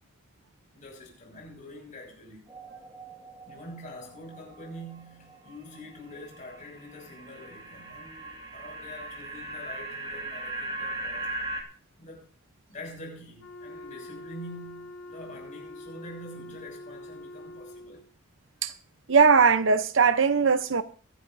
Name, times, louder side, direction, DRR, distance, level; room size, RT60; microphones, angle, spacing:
voice 1, 0.7-2.5 3.5-11.3 12.0-12.3 12.7-18.0, left 1 dB, 35° left, 6.5 m, -45 dB
sound 1, 2.5-5.8 6.2-11.6, right 1 dB, 20° right, 2.0 m, -39 dB
Wind instrument woodwind instrument, 13.4-18.1, left 1 dB, 85° left, 4.4 m, -44 dB
voice 2, 19.1-20.8, right 5 dB, 60° right, 0.8 m, -20 dB
23.0 x 11.5 x 2.7 m
head